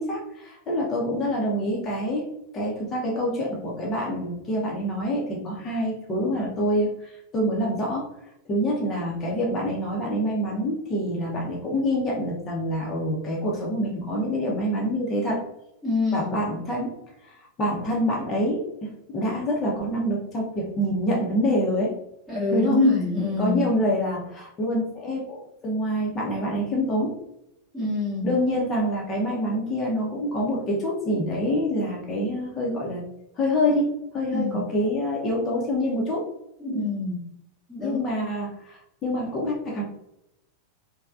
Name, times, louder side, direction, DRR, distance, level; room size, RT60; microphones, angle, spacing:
voice 1, 0.0-2.3 2.5-8.1 8.5-15.4 16.1-16.9 17.2-21.9 22.5-22.8 23.4-27.2 28.2-33.0 33.4-33.9 34.1-36.3 37.8-39.8, equal, 25° left, -2 dB, 0.8 m, -26 dB
voice 2, 15.8-16.4 22.3-23.7 27.7-28.3 34.3-34.6 36.6-37.2 37.7-38.1, left 2 dB, ahead, -11 dB, 1.0 m, -25 dB
3.1 x 2.2 x 2.5 m, 0.82 s
figure-of-eight pair, 90°, 0 cm